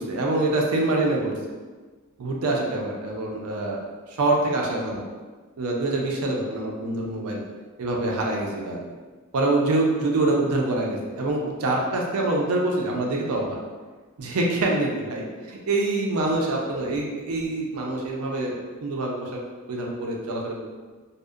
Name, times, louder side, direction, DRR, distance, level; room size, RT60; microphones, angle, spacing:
voice 1, 0.0-1.3 2.2-3.8 4.1-5.0 5.6-7.4 7.8-8.8 9.3-13.6 14.2-19.3 19.7-20.6, right 2 dB, 85° right, -1 dB, 0.5 m, -25 dB
2.6 x 2.0 x 2.4 m, 1.4 s
head